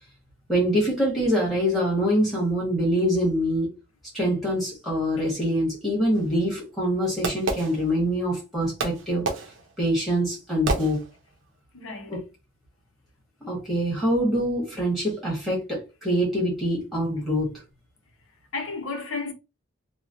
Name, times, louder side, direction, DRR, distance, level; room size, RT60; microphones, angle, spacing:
voice 1, 0.5-3.7 4.1-9.3 9.8-11.0 12.1-12.2 13.5-17.5, equal, ahead, 1.2 m, -24 dB
Fireworks, 6.1-8.4 8.8-11.5, right 3 dB, 60° right, 0.6 m, -31 dB
voice 2, 11.7-12.2 18.5-19.3, left 4 dB, 70° left, 0.7 m, -33 dB
3.0 x 2.1 x 2.5 m
head